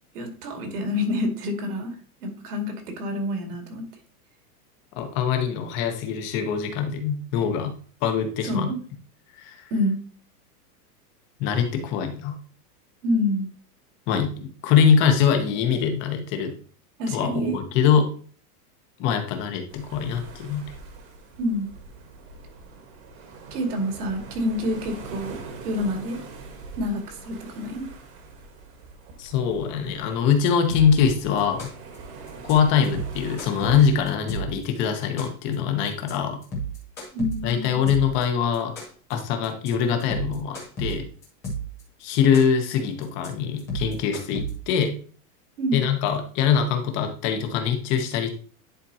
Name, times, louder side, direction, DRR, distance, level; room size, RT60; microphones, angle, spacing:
voice 1, 0.1-2.0 2.2-3.9 8.4-8.8 9.7-10.0 13.0-13.5 17.0-17.6 21.4-21.8 23.5-25.4 25.6-26.2 26.8-27.9 37.1-37.9 45.6-45.8, left 1 dB, 75° right, 4 dB, 2.3 m, -27 dB
voice 2, 5.0-7.7 8.0-8.7 9.4-9.7 11.4-12.3 14.1-16.5 17.1-18.1 19.0-20.7 29.2-31.7 32.4-36.4 37.4-38.7 39.1-41.1 42.0-45.0 45.7-48.3, left 7 dB, 25° left, 6 dB, 0.8 m, -23 dB
sound 1, 19.7-34.1, right 3 dB, 35° right, 1.3 m, -43 dB
sound 2, 30.7-31.1 31.4-32.0 32.3-32.5 32.8-34.6 35.0-35.5 35.8-36.1 36.4-38.2 38.5-39.1 39.4-39.7 40.0-41.8 42.1-42.7 43.0-43.3 43.6-44.8, right 2 dB, 5° left, 0.4 m, -32 dB
10.5 x 4.3 x 2.8 m, 0.43 s
supercardioid pair, 165°, 47 cm